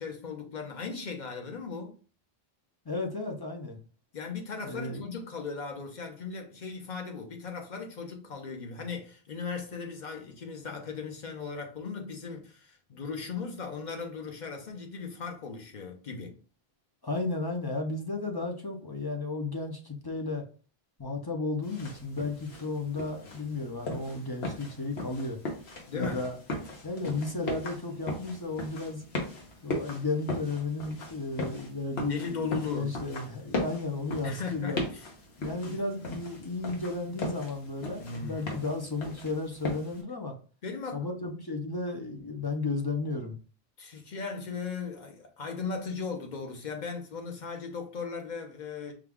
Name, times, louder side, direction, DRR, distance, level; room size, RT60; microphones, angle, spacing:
voice 1, 0.0-1.9 4.1-16.4 25.9-26.3 32.1-32.9 34.2-35.0 35.7-35.8 38.0-38.6 40.6-41.0 43.8-48.9, left 5 dB, 50° left, 0.9 m, -37 dB
voice 2, 2.9-3.8 4.6-5.1 17.0-20.5 21.0-25.4 25.9-26.4 26.8-29.1 29.6-34.8 35.4-40.3 40.9-43.4, left 3 dB, 30° left, 0.5 m, -34 dB
sound 1, 21.6-40.0, left 1 dB, 80° left, 1.2 m, -38 dB
5.0 x 2.3 x 3.5 m
omnidirectional pair, 1.0 m